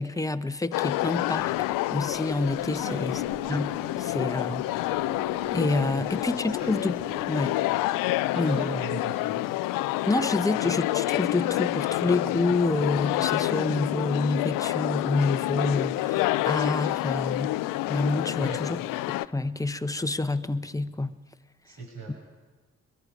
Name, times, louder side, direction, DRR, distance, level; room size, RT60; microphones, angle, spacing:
voice 1, 0.0-3.2 3.5-3.7 4.0-4.6 5.5-6.9 7.3-7.6 8.4-8.6 10.1-17.6 17.9-18.8 19.2-21.2, left 2 dB, 10° left, 10 dB, 1.0 m, -28 dB
sound 1, 0.7-19.3, left 17 dB, 80° left, 0.5 m, -28 dB
sound 2, 1.3-7.3, right 5 dB, 40° right, 3.1 m, -47 dB
voice 2, 8.3-9.6 18.4-18.6 21.6-22.1, right 3 dB, 60° right, -1 dB, 6.2 m, -38 dB
22.5 x 22.0 x 5.2 m, 1.3 s
supercardioid pair, 50°, 33 cm